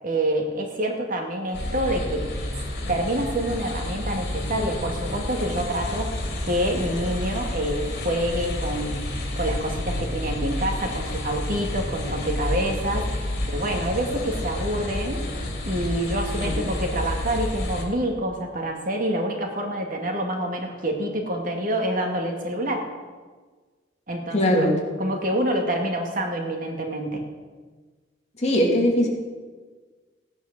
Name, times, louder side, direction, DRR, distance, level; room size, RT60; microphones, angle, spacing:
voice 1, 0.0-2.2 2.9-6.1 6.4-9.0 9.4-15.2 15.6-22.8 24.1-24.7 25.0-27.2, right 1 dB, 50° right, 2 dB, 2.2 m, -27 dB
sound 1, 1.5-17.8, left 1 dB, 60° left, 3.7 m, -30 dB
voice 2, 24.3-24.8 28.4-29.1, equal, 40° left, -2 dB, 2.9 m, -20 dB
16.0 x 9.7 x 6.7 m, 1.5 s
head